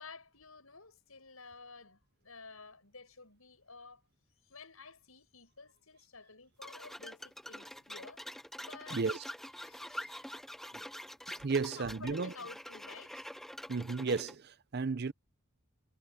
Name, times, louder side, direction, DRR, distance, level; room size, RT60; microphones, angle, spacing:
voice 1, 0.0-4.0 4.4-9.0 9.6-10.3 11.5-13.2, left 4 dB, 75° left, 7.2 m, -52 dB
sound 1, 6.6-14.3, equal, ahead, 0.5 m, -46 dB
voice 2, 8.9-9.2 10.7-10.8 11.3-12.3 13.7-15.1, right 4 dB, 50° right, 0.6 m, -34 dB
head